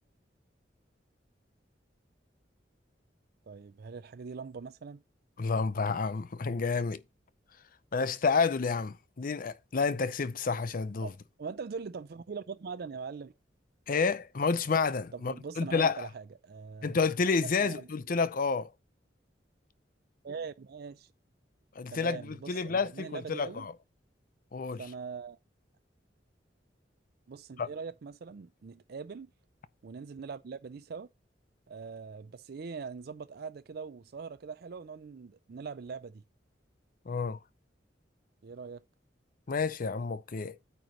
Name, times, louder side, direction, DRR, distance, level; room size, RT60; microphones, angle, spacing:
voice 1, 3.5-5.0 11.0-11.1 11.4-13.3 15.1-17.0 17.4-17.9 20.2-21.1 21.9-23.7 24.8-25.4 27.3-29.3 29.8-31.1 31.7-36.2 38.4-38.8, right 5 dB, 60° right, 0.4 m, -42 dB
voice 2, 5.4-7.0 7.9-11.1 13.9-16.1 16.8-18.7 21.8-23.7 24.5-24.8 27.6-27.7 37.1-37.4 39.5-40.5, left 4 dB, 50° left, 0.6 m, -30 dB
9.0 x 3.1 x 6.3 m
head